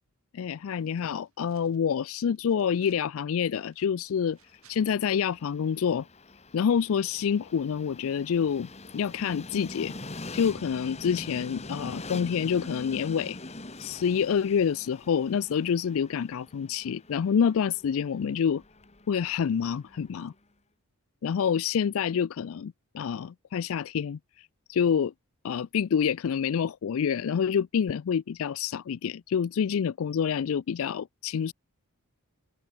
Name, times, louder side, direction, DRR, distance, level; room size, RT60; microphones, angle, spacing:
voice 1, 0.3-4.4 4.7-6.1 6.5-9.9 10.3-13.4 13.8-18.6 19.1-20.3 21.2-24.2 24.7-25.1 25.4-31.5, left 7 dB, 70° left, 0.4 m, -27 dB
sound 1, 0.9-1.9 2.3-3.1 3.4-5.0, right 10 dB, 80° right, 6.9 m, -64 dB
Train, 4.3-20.3, left 2 dB, 30° left, 1.9 m, -44 dB
open air
head